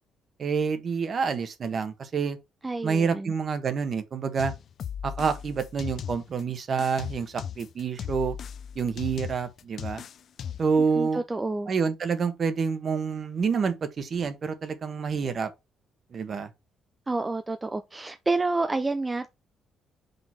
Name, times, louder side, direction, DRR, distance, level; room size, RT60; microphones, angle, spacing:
voice 1, 0.4-2.4 2.8-4.5 5.0-8.4 8.7-10.0 10.6-11.2 11.7-15.5 16.1-16.5, right 5 dB, 50° right, 1.3 m, -28 dB
voice 2, 2.6-3.3 10.9-11.7 17.1-19.3, right 3 dB, 20° right, 0.5 m, -29 dB
sound 1, 4.4-6.4 6.8-10.8, left 8 dB, 60° left, 0.5 m, -37 dB
5.3 x 3.9 x 5.8 m
cardioid pair, 90°, 0 cm